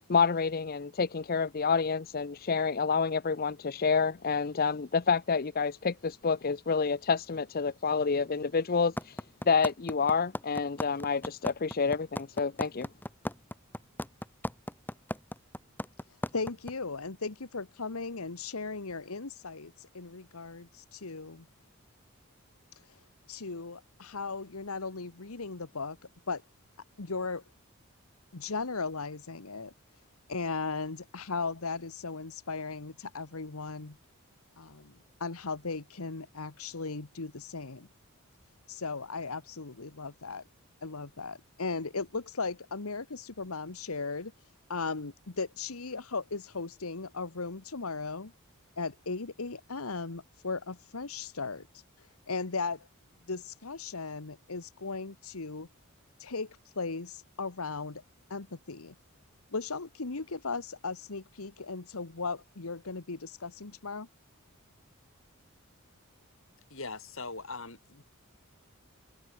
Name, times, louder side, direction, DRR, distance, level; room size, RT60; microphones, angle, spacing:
voice 1, 0.0-12.9, left 5 dB, 45° left, 0.6 m, -28 dB
sound 1, 9.0-16.7, left 1 dB, 10° left, 2.9 m, -35 dB
voice 2, 16.3-21.4 22.7-23.0 23.3-26.0 26.3-26.4 27.0-27.4 28.3-29.7 30.3-34.0 34.6-34.9 35.2-37.9 38.7-40.4 40.8-44.3 44.7-48.3 48.8-52.9 53.3-55.7 56.2-58.0 58.3-58.9 59.5-64.1, left 4 dB, 80° left, 1.4 m, -37 dB
voice 3, 66.7-68.0, left 3 dB, 65° left, 4.7 m, -41 dB
open air
head